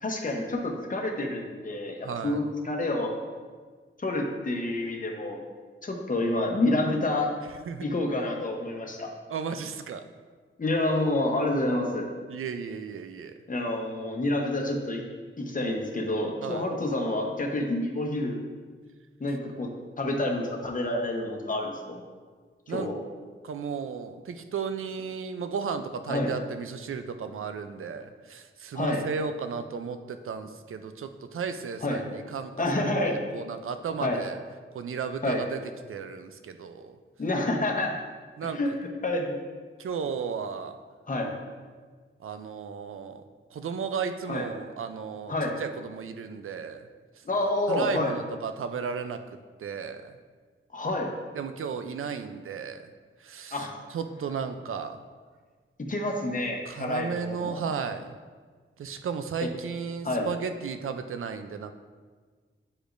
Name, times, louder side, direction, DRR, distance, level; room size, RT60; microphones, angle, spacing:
voice 1, 0.0-3.1 4.0-5.4 5.8-7.3 7.8-9.1 10.6-12.1 13.5-15.0 15.4-18.4 19.2-19.7 20.0-22.0 22.7-23.0 26.1-26.3 28.7-29.0 31.8-32.0 32.6-33.2 34.0-34.2 35.2-35.4 37.2-37.9 38.5-38.7 39.0-39.4 41.1-41.3 44.3-44.5 45.3-45.6 47.2-48.1 50.7-51.1 53.5-53.8 55.8-57.6 59.4-59.5 60.0-60.3, left 1 dB, 40° left, 1 dB, 0.9 m, -28 dB
voice 2, 2.0-2.4 7.7-7.8 9.3-10.0 12.3-13.3 16.4-16.7 22.7-22.9 23.4-32.9 33.3-34.4 34.7-35.6 35.9-37.0 38.4-38.6 39.8-40.8 42.2-43.2 43.5-46.9 47.7-49.2 49.6-50.1 51.4-52.9 53.2-55.0 56.7-58.1 58.8-61.7, right 6 dB, 80° right, 9 dB, 0.5 m, -34 dB
8.4 x 5.0 x 2.6 m, 1.5 s
wide cardioid pair, 75°, 21 cm